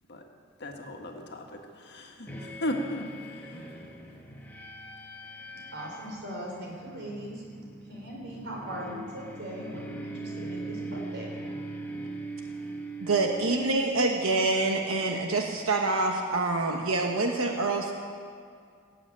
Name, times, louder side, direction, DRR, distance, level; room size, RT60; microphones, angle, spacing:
voice 1, 0.6-1.4 1.8-3.7, left 1 dB, 55° left, 2 dB, 1.6 m, -35 dB
sound 1, 2.3-14.3, right 2 dB, 10° left, 1.4 m, -41 dB
voice 2, 5.7-7.3 7.9-11.2, right 1 dB, 55° right, -2 dB, 4.8 m, -39 dB
voice 3, 13.0-17.9, right 3 dB, 75° right, 2 dB, 1.2 m, -26 dB
17.5 x 8.0 x 9.2 m, 2.2 s
head